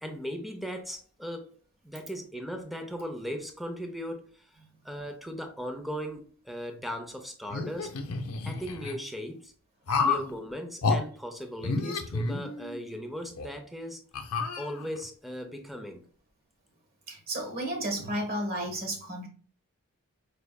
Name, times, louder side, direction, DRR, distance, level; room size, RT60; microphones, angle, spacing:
voice 1, 0.0-1.5 1.8-4.6 4.8-7.9 8.4-9.5 10.0-14.0 14.6-16.0, equal, ahead, 4 dB, 0.6 m, -38 dB
sound 1, 7.5-8.9 9.9-10.3 10.8-11.0 11.6-12.9 13.3-13.5 14.1-15.1, left 4 dB, 70° left, 0.6 m, -30 dB
voice 2, 17.1-19.3, right 1 dB, 45° right, 1 dB, 1.4 m, -32 dB
4.6 x 3.2 x 2.3 m, 0.42 s
head